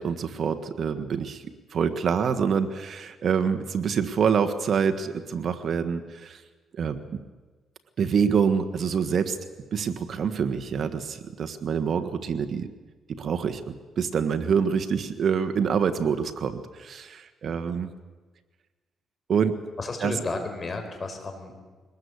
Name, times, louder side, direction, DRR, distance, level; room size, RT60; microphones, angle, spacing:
voice 1, 0.0-1.4 1.7-6.4 6.7-7.2 8.0-9.4 9.7-12.7 13.1-17.9 19.3-19.6 20.0-20.1, right 6 dB, 55° right, 8 dB, 1.5 m, -26 dB
voice 2, 19.8-21.6, left 3 dB, 35° left, 5 dB, 5.2 m, -33 dB
23.5 x 20.0 x 8.3 m, 1.3 s
cardioid pair, 90°, 0 cm